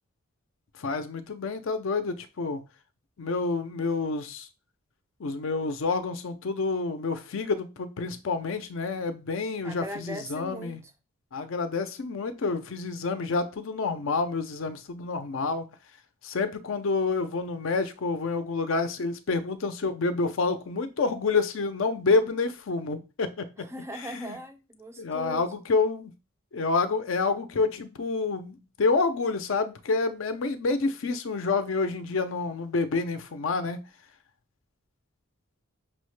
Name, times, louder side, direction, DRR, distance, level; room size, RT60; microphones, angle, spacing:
voice 1, 0.8-2.6 3.2-4.5 5.2-10.8 11.3-15.7 16.2-23.7 24.1-24.3 25.0-26.1 26.5-33.8, left 4 dB, 60° left, 0.5 m, -28 dB
voice 2, 9.6-10.9 23.6-25.5, right 1 dB, 15° right, 0.4 m, -39 dB
6.0 x 2.1 x 3.1 m
head